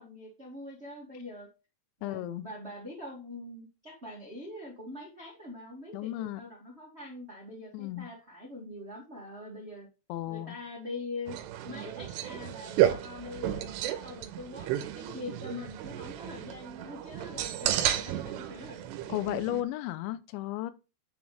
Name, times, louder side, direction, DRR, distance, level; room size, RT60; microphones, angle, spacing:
voice 1, 0.0-1.5 2.0-9.9 10.3-11.4 11.6-18.9, left 2 dB, 40° right, 0.9 m, -43 dB
voice 2, 2.0-2.5 5.9-6.4 7.7-8.1 10.1-10.5 19.1-20.7, left 14 dB, 85° left, 3.1 m, -34 dB
sound 1, 11.3-19.6, right 12 dB, 80° right, 2.8 m, -32 dB
9.3 x 5.9 x 3.4 m
omnidirectional pair, 5.2 m